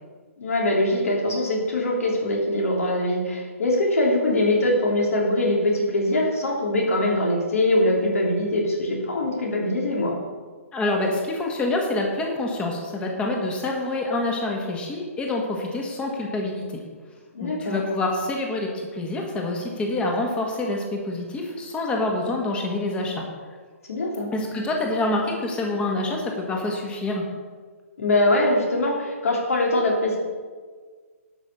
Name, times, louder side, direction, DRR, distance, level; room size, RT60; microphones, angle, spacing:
voice 1, 0.4-10.1 17.3-17.8 23.9-24.3 28.0-30.2, left 1 dB, 70° left, -2 dB, 3.3 m, -22 dB
voice 2, 10.7-16.8 17.4-23.2 24.3-27.2, left 2 dB, 15° left, 1 dB, 1.6 m, -26 dB
11.5 x 5.6 x 6.9 m, 1.5 s
figure-of-eight pair, 135°, 8 cm